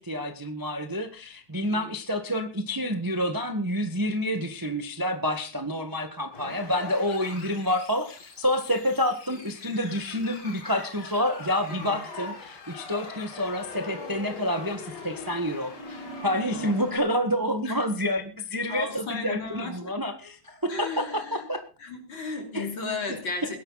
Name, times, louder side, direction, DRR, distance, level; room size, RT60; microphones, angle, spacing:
voice 1, 0.0-21.6 22.5-22.7, equal, 15° right, 6 dB, 0.9 m, -28 dB
voice 2, 1.6-1.9 7.3-7.6 11.7-12.0 16.5-16.7 17.7-17.8 18.7-20.0 20.7-21.5 21.8-23.6, left 3 dB, 40° left, 4 dB, 3.8 m, -35 dB
sound 1, 6.3-17.0, left 3 dB, 60° left, 4.6 m, -41 dB
20.0 x 11.0 x 4.2 m, 0.35 s
omnidirectional pair, 3.4 m